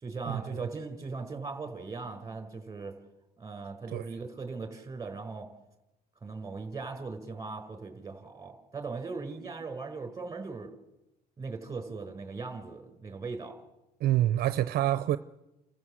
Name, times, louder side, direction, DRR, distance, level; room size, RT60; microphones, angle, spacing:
voice 1, 0.0-2.9 3.4-5.5 6.2-10.7 11.4-13.6, right 4 dB, 20° right, 4.8 m, -39 dB
voice 2, 14.0-15.2, right 13 dB, 65° right, 0.7 m, -26 dB
30.0 x 14.0 x 7.8 m
cardioid pair, 110°, 17 cm